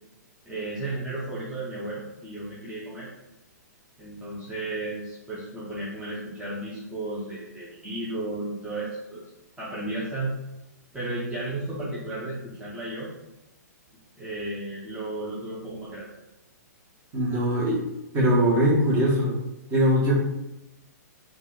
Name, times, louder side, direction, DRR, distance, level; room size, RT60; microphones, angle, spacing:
voice 1, 0.4-3.1 4.0-9.2 9.6-10.3 10.9-13.1 14.2-16.1, right 2 dB, 10° right, -9 dB, 0.8 m, -34 dB
voice 2, 17.1-17.8 18.1-19.4 19.7-20.2, equal, 25° right, -5 dB, 1.4 m, -21 dB
3.8 x 2.5 x 3.2 m, 0.92 s
figure-of-eight pair, 120°, 10 cm